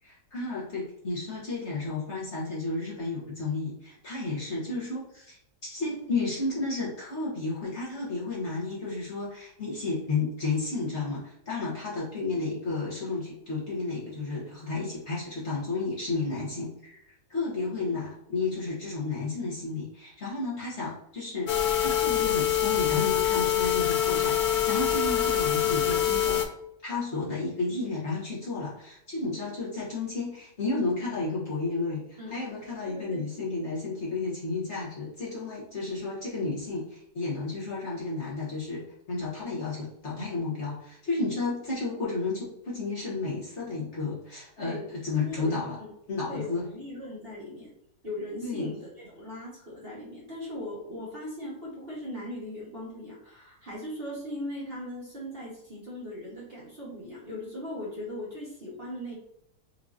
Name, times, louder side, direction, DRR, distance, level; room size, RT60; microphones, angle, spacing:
voice 1, 0.0-17.0 17.3-26.5 26.8-45.8 46.1-46.7 48.4-48.7, left 3 dB, 45° left, -7 dB, 1.2 m, -32 dB
sound 1, 21.5-26.4, left 10 dB, 70° left, 1.0 m, -25 dB
voice 2, 32.9-33.2 44.6-44.9 45.1-45.9 46.3-47.7 48.0-59.1, left 1 dB, 35° right, -7 dB, 1.3 m, -39 dB
4.8 x 2.7 x 2.5 m, 0.77 s
omnidirectional pair, 1.9 m